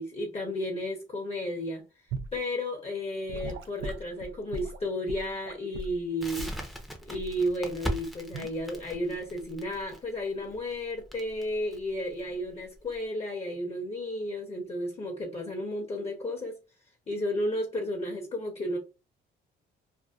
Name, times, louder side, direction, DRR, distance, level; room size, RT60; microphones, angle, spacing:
voice 1, 0.0-1.8 2.3-6.5 7.0-16.5 17.1-18.8, left 1 dB, 30° left, 0.8 m, -33 dB
Gurgling / Sink (filling or washing) / Liquid, 2.1-2.4 3.3-6.0 6.4-6.6 7.1-7.4 8.3-8.6, right 2 dB, 80° right, 0.5 m, -38 dB
Crackle, 6.2-13.0, right 1 dB, ahead, 0.6 m, -39 dB
2.6 x 2.2 x 2.3 m
cardioid pair, 90°, 20 cm